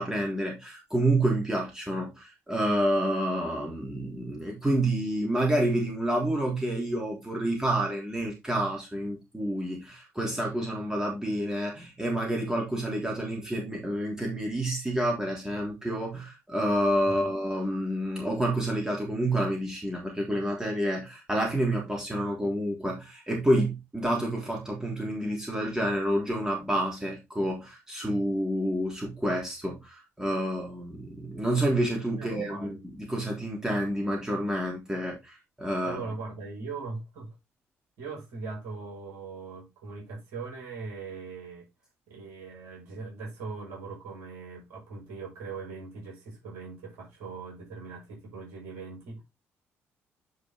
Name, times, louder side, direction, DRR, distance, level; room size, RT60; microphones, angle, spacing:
voice 1, 0.0-36.0, right 1 dB, 10° right, 3.5 m, -29 dB
voice 2, 32.2-32.8 35.8-37.3 38.0-41.6 42.1-49.2, right 4 dB, 60° right, 6.6 m, -40 dB
9.6 x 5.1 x 3.8 m
figure-of-eight pair, 45°, 7 cm